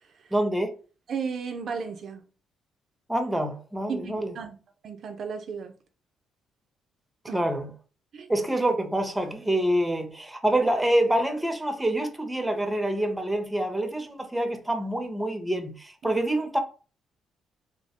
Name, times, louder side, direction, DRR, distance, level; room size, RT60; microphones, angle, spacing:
voice 1, 0.3-0.7 3.1-4.3 7.3-7.7 8.3-16.6, right 1 dB, 10° right, 0.5 m, -26 dB
voice 2, 1.1-2.2 3.9-4.6 4.8-5.7 7.3-7.4 8.1-8.3 16.0-16.2, right 6 dB, 60° right, 0.3 m, -34 dB
2.7 x 2.0 x 2.8 m
cardioid pair, 90°, 0 cm